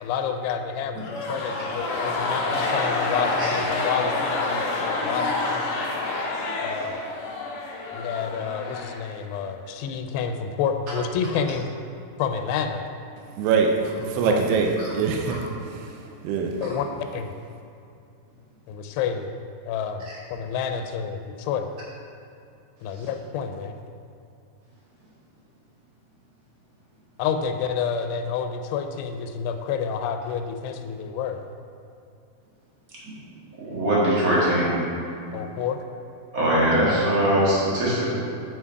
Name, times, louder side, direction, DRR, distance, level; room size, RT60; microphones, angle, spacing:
voice 1, 0.0-4.6 5.0-5.7 6.6-7.0 7.9-11.7 12.2-12.9 14.1-14.4 16.6-16.9 17.1-17.3 18.7-19.3 19.7-21.7 22.8-23.8 27.2-31.4 35.3-35.8, left 6 dB, 90° left, 6 dB, 2.7 m, -29 dB
sound 1, 1.0-9.4, left 3 dB, 65° left, 2.1 m, -27 dB
voice 2, 13.4-16.6, right 5 dB, 80° right, 2 dB, 2.6 m, -24 dB
voice 3, 33.6-34.7 36.3-38.1, right 1 dB, 55° right, -7 dB, 0.9 m, -21 dB
7.9 x 5.7 x 4.7 m, 2.6 s
omnidirectional pair, 4.7 m